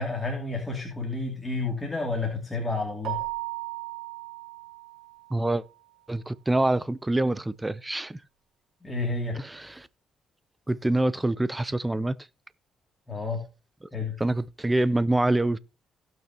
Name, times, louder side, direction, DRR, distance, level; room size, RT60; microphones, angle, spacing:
voice 1, 0.0-3.2 8.8-9.4 13.1-13.4 13.9-14.1, left 3 dB, 15° left, 2.6 m, -30 dB
Keyboard (musical), 3.0-5.5, right 19 dB, 90° right, 2.3 m, -36 dB
voice 2, 5.3-5.6 6.1-8.2 9.3-9.9 10.7-12.2 14.2-15.6, right 1 dB, 15° right, 0.6 m, -25 dB
17.5 x 6.2 x 2.9 m
cardioid pair, 90°, 0 cm